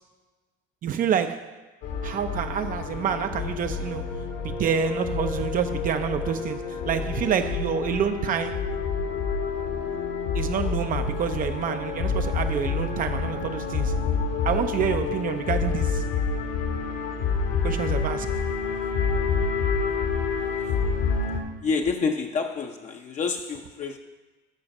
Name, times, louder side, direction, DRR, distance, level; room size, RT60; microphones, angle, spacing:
voice 1, 0.8-1.6 2.0-4.2 4.4-8.7 10.3-13.9 14.4-16.1 17.6-18.4, right 8 dB, 45° right, 0.5 m, -28 dB
sound 1, 1.8-21.4, left 5 dB, 80° left, 2.1 m, -28 dB
voice 2, 20.4-20.8 21.6-24.0, left 4 dB, 35° left, 0.7 m, -29 dB
14.0 x 5.0 x 5.3 m
cardioid pair, 120°, 20 cm